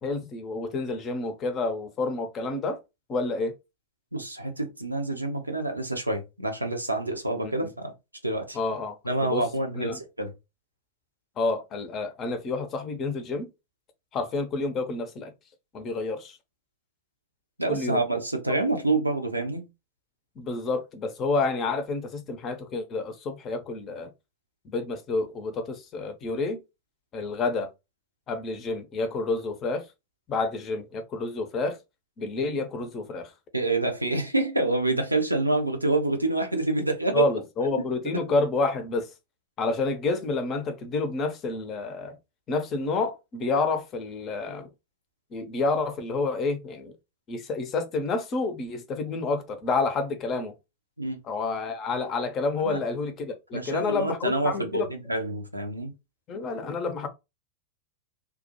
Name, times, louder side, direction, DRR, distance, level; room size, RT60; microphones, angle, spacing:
voice 1, 0.0-2.8 3.1-3.5 7.4-7.7 8.5-9.4 9.7-10.0 11.4-13.5 14.1-15.3 15.7-16.4 17.7-18.0 20.4-24.1 24.6-26.6 27.1-27.7 28.3-29.8 30.3-31.8 32.2-33.3 37.1-39.1 39.6-42.2 42.5-44.7 45.3-46.9 47.3-50.5 51.2-54.9 56.3-57.1, left 3 dB, 30° left, 0.5 m, -29 dB
voice 2, 4.1-7.9 8.2-8.6 9.0-10.3 17.6-19.6 33.5-37.3 37.8-37.9 51.0-51.2 52.6-52.8 53.5-55.9, right 2 dB, 85° right, 0.6 m, -27 dB
2.3 x 2.1 x 2.8 m
figure-of-eight pair, 90°, 0 cm